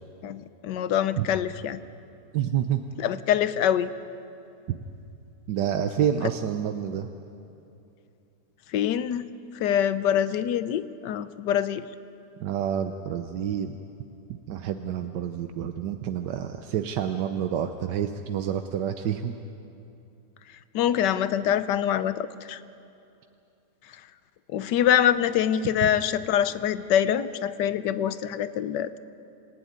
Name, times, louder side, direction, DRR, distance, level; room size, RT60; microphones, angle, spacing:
voice 1, 0.2-1.8 3.0-3.9 8.7-9.3 9.6-11.8 20.7-22.6 24.5-29.0, left 10 dB, 85° left, 13 dB, 1.4 m, -25 dB
voice 2, 2.3-2.8 4.7-4.8 5.5-7.1 12.4-13.8 14.3-19.4 25.8-25.9, right 9 dB, 85° right, 7 dB, 1.4 m, -28 dB
26.5 x 15.0 x 9.6 m, 2.7 s
omnidirectional pair, 1.8 m